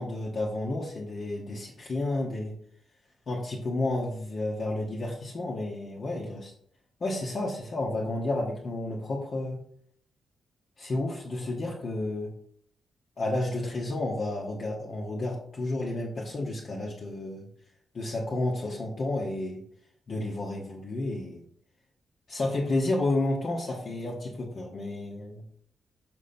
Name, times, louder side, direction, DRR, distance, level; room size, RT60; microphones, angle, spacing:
voice 1, 0.0-2.6 3.3-6.5 7.0-9.6 10.8-12.3 13.2-17.5 17.9-19.6 20.1-21.4 22.3-25.4, left 2 dB, 40° left, -3 dB, 1.1 m, -31 dB
6.4 x 5.2 x 4.3 m, 0.63 s
wide cardioid pair, 160°, 0 cm